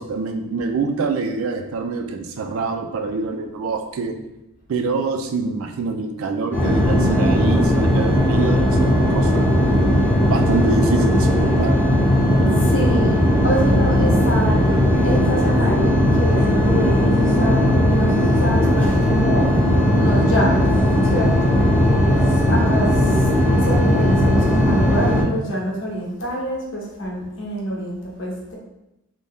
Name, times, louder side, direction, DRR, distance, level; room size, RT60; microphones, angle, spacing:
voice 1, 0.0-4.1 4.7-9.5 10.3-11.8, right 4 dB, 70° right, 5 dB, 0.3 m, -25 dB
sound 1, 6.5-25.2, left 1 dB, 10° left, 0.7 m, -17 dB
voice 2, 12.5-14.7 15.0-20.7 21.0-21.6 22.2-23.3 23.6-28.6, equal, 60° left, -2 dB, 0.7 m, -26 dB
2.6 x 2.2 x 3.4 m, 0.91 s
head